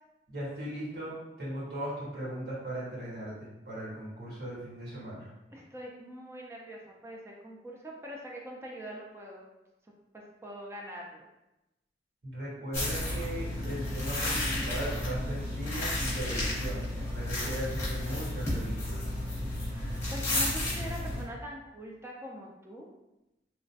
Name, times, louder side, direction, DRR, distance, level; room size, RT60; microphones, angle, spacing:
voice 1, 0.3-5.3 12.2-19.0, right 1 dB, 65° right, -9 dB, 1.4 m, -38 dB
voice 2, 5.5-9.5 10.4-11.3 19.7-22.9, equal, 15° right, -2 dB, 0.4 m, -43 dB
sound 1, 12.7-21.2, left 1 dB, 15° left, 0.9 m, -32 dB
3.0 x 2.1 x 2.7 m, 0.95 s
head